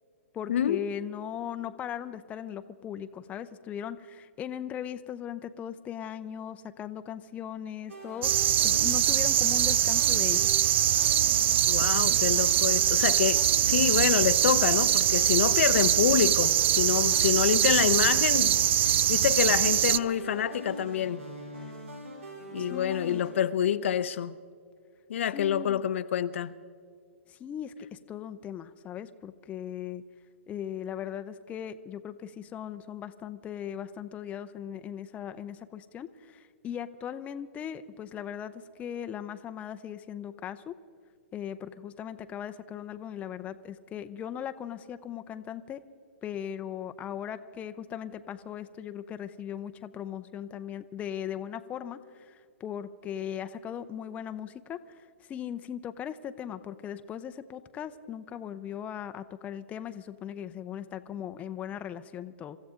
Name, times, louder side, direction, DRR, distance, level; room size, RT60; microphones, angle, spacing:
voice 1, 0.3-10.5 22.6-23.2 25.3-25.8 27.3-30.0 30.5-40.7 41.3-45.8 46.2-62.6, left 9 dB, 20° left, 0.6 m, -38 dB
sound 1, 7.9-23.3, right 1 dB, 85° right, 5.4 m, -43 dB
sound 2, 8.2-20.0, right 11 dB, 55° right, 0.4 m, -23 dB
voice 2, 11.7-21.2 22.5-24.4 25.1-26.5, left 9 dB, 65° left, 0.6 m, -27 dB
26.0 x 14.0 x 3.7 m
hypercardioid pair, 125°, 7 cm